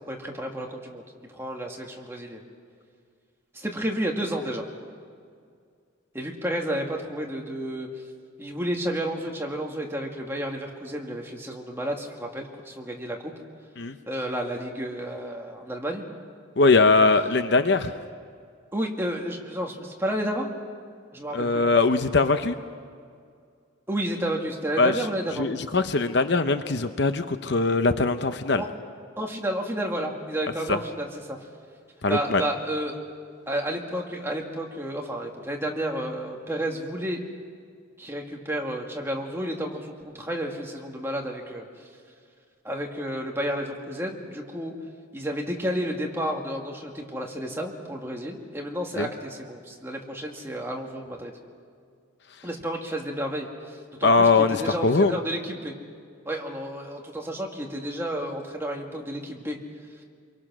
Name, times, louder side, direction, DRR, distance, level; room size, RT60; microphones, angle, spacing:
voice 1, 0.1-1.0 1.3-2.4 3.5-4.6 6.1-7.9 8.4-13.3 14.1-16.0 18.7-20.5 21.1-21.7 23.9-25.5 28.6-28.7 29.2-31.4 32.1-33.0 33.5-37.2 38.0-41.7 42.6-44.7 45.1-51.3 52.4-55.7 56.3-59.6, right 1 dB, 10° right, 0 dB, 2.1 m, -31 dB
voice 2, 16.6-17.9 21.3-22.6 24.8-25.0 25.4-28.6 30.7-30.8 32.0-32.4 49.0-49.1 54.0-55.2, left 3 dB, 55° left, 9 dB, 0.8 m, -21 dB
27.0 x 23.5 x 6.2 m, 2.2 s
head